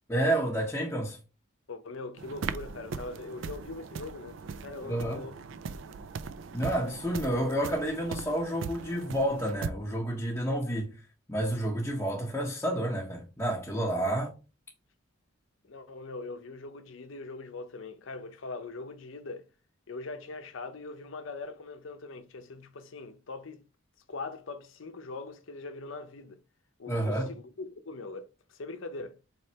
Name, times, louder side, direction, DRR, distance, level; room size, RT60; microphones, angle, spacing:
voice 1, 0.1-1.2 4.9-5.2 6.5-10.9 11.3-14.3 26.9-27.3, right 1 dB, 10° left, 0.8 m, -30 dB
voice 2, 1.7-4.4 4.6-5.4 14.0-14.2 15.7-19.5 19.9-23.6 24.1-26.4 26.8-29.2, left 3 dB, 70° left, 0.7 m, -41 dB
sound 1, 2.2-9.7, right 5 dB, 65° right, 0.4 m, -39 dB
4.3 x 3.2 x 2.8 m
head